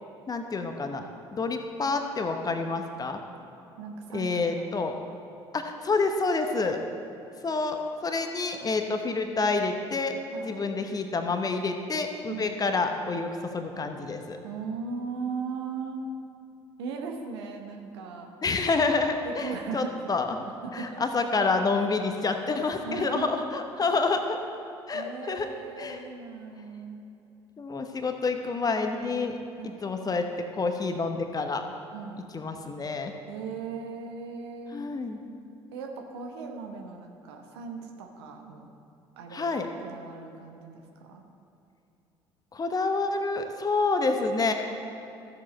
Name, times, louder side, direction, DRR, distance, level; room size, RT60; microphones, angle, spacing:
voice 1, 0.3-3.2 4.1-5.0 5.5-6.8 7.4-14.4 18.4-20.4 20.7-24.4 24.9-25.5 25.8-26.0 27.6-29.4 29.8-30.3 30.6-31.6 32.3-33.1 34.7-35.2 39.3-39.7 42.5-44.5, left 3 dB, 25° left, 6 dB, 1.0 m, -28 dB
voice 2, 3.8-5.0 8.9-9.0 10.3-10.5 12.3-12.5 14.4-16.1 16.8-18.3 19.2-19.9 20.4-21.0 22.8-23.3 24.9-27.1 29.6-29.8 31.9-32.2 33.3-34.9 35.7-38.7 39.2-39.5 39.8-41.2, right 5 dB, 70° right, 3 dB, 1.0 m, -38 dB
14.0 x 7.5 x 4.3 m, 2.7 s
figure-of-eight pair, 55°, 14 cm